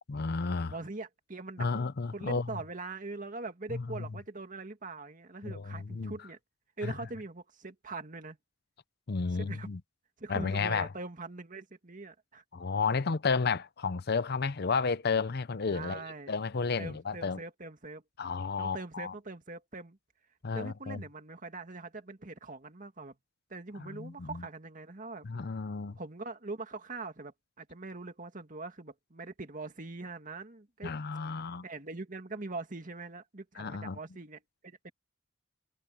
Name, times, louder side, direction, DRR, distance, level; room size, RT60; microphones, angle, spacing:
voice 1, 0.1-0.7 1.6-2.5 3.7-3.8 5.4-6.1 6.8-6.9 9.1-9.8 10.3-10.9 12.5-17.4 18.2-19.1 20.4-21.0 23.8-24.5 25.2-26.0 30.8-31.6 33.6-34.0, left 4 dB, 55° left, 0.7 m, -32 dB
voice 2, 0.7-1.9 2.1-6.4 6.8-8.4 9.3-9.7 10.2-12.4 15.7-16.3 16.8-18.0 18.6-20.0 20.5-23.1 23.5-25.3 26.0-30.9 31.6-34.9, right 3 dB, 45° right, 2.1 m, -42 dB
head